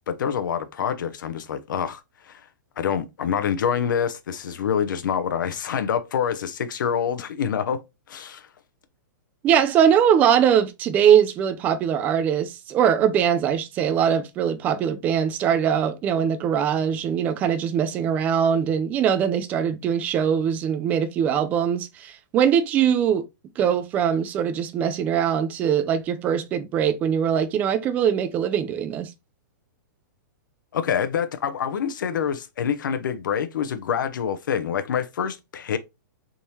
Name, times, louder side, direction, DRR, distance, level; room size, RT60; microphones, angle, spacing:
voice 1, 0.1-2.4 2.8-7.8 8.1-8.5 30.7-35.8, left 8 dB, 80° left, 0.7 m, -26 dB
voice 2, 9.4-23.2 23.6-29.1, right 8 dB, 15° right, 0.3 m, -21 dB
3.6 x 2.7 x 3.0 m
hypercardioid pair, 165°, 10 cm